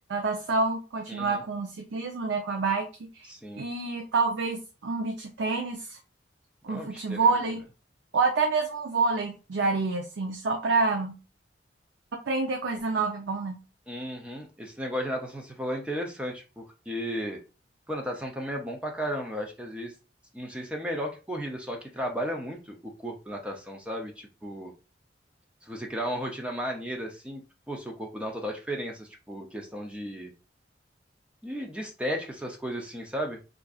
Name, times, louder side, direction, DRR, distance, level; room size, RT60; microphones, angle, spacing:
voice 1, 0.1-3.3 3.6-6.0 6.6-7.6 8.1-11.2 12.3-13.6, right 4 dB, 85° right, 2 dB, 0.5 m, -27 dB
voice 2, 1.1-1.4 3.3-3.6 6.7-7.3 13.9-17.4 17.9-19.9 20.3-24.7 25.6-27.4 27.7-30.3 31.4-33.4, equal, 5° right, 1 dB, 0.5 m, -34 dB
4.5 x 2.5 x 2.3 m, 0.32 s
head